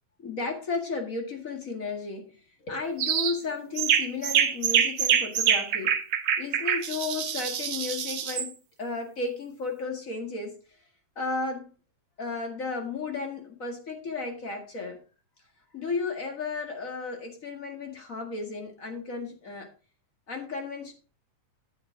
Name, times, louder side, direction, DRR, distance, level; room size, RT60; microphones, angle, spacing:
voice 1, 0.2-2.3 2.6-6.0 6.4-8.5 8.8-10.6 11.2-11.7 12.2-15.0 15.7-19.7 20.3-20.9, left 4 dB, 30° left, 4 dB, 1.9 m, -34 dB
sound 1, 3.0-3.4 3.8-8.5, right 8 dB, 85° right, 0.9 m, -25 dB
10.5 x 9.0 x 3.7 m, 0.33 s
omnidirectional pair, 3.3 m